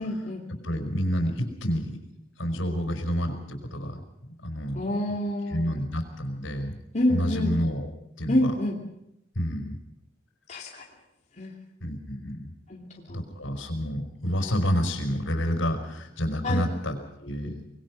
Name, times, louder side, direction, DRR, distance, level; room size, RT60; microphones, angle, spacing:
voice 1, 0.0-0.4 4.7-5.8 6.9-7.6 8.3-8.8 10.5-10.8 11.4-11.5 12.7-13.2 16.4-16.7, left 1 dB, 40° left, -1 dB, 2.7 m, -27 dB
voice 2, 0.6-1.9 2.4-3.4 3.6-4.0 4.4-5.2 5.5-6.8 7.1-7.9 8.2-8.5 9.3-9.8 11.8-12.5 13.1-17.5, equal, 85° left, 5 dB, 5.0 m, -29 dB
25.0 x 21.0 x 6.3 m, 0.85 s
head